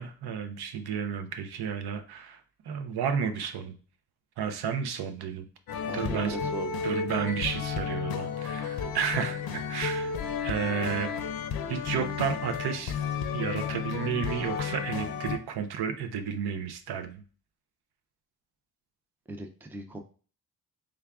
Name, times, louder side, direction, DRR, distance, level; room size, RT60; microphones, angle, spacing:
voice 1, 0.0-2.4 2.7-3.7 4.4-5.5 5.9-6.4 6.8-11.1 11.7-12.9 13.3-17.2, right 7 dB, 85° right, 7 dB, 0.6 m, -32 dB
sound 1, 5.7-15.4, left 6 dB, 70° left, 0.5 m, -32 dB
voice 2, 5.9-6.8 19.3-20.0, right 2 dB, 5° right, 4 dB, 0.3 m, -38 dB
3.5 x 3.4 x 2.3 m, 0.39 s
wide cardioid pair, 125°, 38 cm